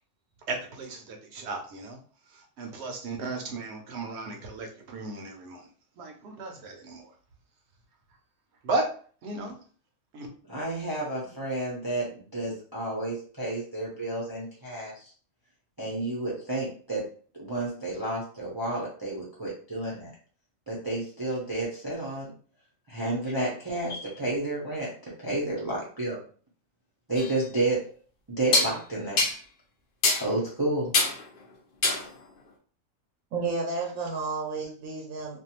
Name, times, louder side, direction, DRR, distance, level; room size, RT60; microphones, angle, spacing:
voice 1, 0.5-2.0 2.6-5.6 6.0-7.1 8.6-8.9 9.2-9.5 10.1-10.3, right 3 dB, 60° right, 3 dB, 0.8 m, -34 dB
voice 2, 10.5-15.1 15.8-17.1 17.3-20.1 20.7-22.3 22.9-24.9 25.2-26.2 27.1-27.8 28.3-29.2 30.2-30.9, right 2 dB, 25° right, -5 dB, 0.5 m, -31 dB
sound 1, 27.2-27.3 28.5-28.7 29.2-29.4 30.0-30.3 30.9-31.2 31.8-32.1, left 3 dB, 55° left, 0.6 m, -24 dB
voice 3, 33.3-35.4, right 4 dB, 80° right, 0 dB, 1.1 m, -31 dB
2.5 x 2.2 x 2.8 m, 0.43 s
omnidirectional pair, 1.4 m